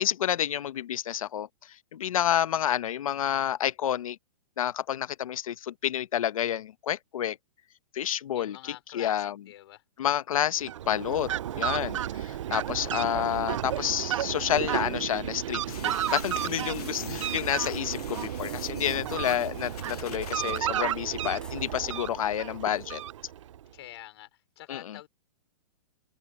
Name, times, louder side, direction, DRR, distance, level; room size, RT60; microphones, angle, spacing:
voice 1, 0.0-1.5 1.9-4.2 4.6-7.4 7.9-8.6 8.9-9.3 10.0-23.0 24.7-25.0, left 10 dB, 60° left, 1.2 m, -29 dB
voice 2, 8.3-9.8 23.6-25.1, left 15 dB, 40° left, 4.8 m, -46 dB
Fowl, 10.6-23.6, right 11 dB, 50° right, 0.5 m, -33 dB
sound 1, 15.7-20.5, left 9 dB, 75° left, 1.3 m, -44 dB
sound 2, 15.7-15.8 16.2-17.7 17.9-20.9 21.4-21.7, left 3 dB, 5° left, 5.0 m, -54 dB
hypercardioid pair, 170°, 20 cm